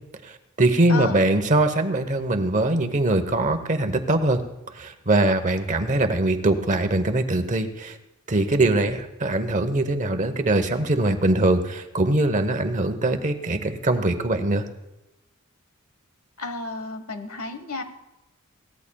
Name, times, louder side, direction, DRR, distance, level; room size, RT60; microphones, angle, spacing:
voice 1, 0.6-4.4 4.7-8.0 8.3-14.7, right 2 dB, 35° right, 8 dB, 0.9 m, -22 dB
voice 2, 16.4-17.8, left 3 dB, 80° left, 9 dB, 1.2 m, -32 dB
22.5 x 16.5 x 2.3 m, 0.97 s
head